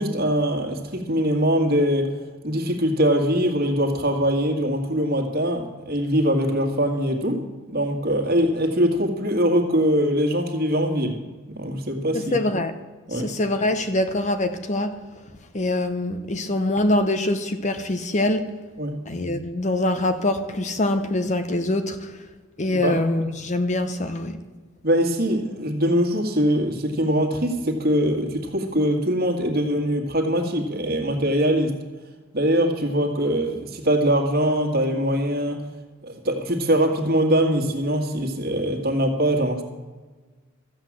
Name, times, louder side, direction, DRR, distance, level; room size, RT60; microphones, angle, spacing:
voice 1, 0.0-2.2 2.4-11.2 11.6-12.4 13.1-13.3 18.8-19.0 22.7-23.0 24.8-31.8 32.3-35.6 36.0-39.6, equal, 45° right, 4 dB, 1.9 m, -22 dB
voice 2, 12.1-12.7 13.1-15.0 15.5-18.5 19.1-22.1 22.6-24.4, left 1 dB, 35° left, 8 dB, 0.8 m, -24 dB
14.0 x 8.1 x 7.4 m, 1.3 s
head